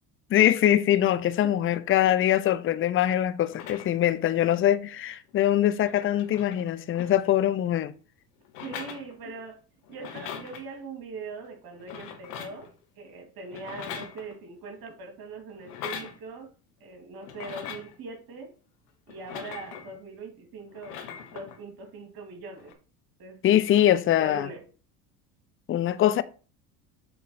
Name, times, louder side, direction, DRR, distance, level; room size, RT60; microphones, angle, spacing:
voice 1, 0.3-7.9 23.4-24.5 25.7-26.2, left 12 dB, 25° left, 0.6 m, -23 dB
sound 1, 3.5-4.1 5.3-5.4 5.6-7.6 8.4-9.5 9.8-10.6 11.7-12.7 13.5-14.6 15.6-16.2 17.2-18.0 19.1-20.0 20.7-21.6 22.6-22.7, left 8 dB, 70° left, 1.5 m, -41 dB
voice 2, 8.6-9.6 9.9-12.7 13.0-16.5 16.8-18.5 19.1-22.7 23.2-23.4 24.2-24.6, right 3 dB, 50° right, 2.5 m, -41 dB
7.7 x 3.8 x 5.6 m
hypercardioid pair, 70°, 47 cm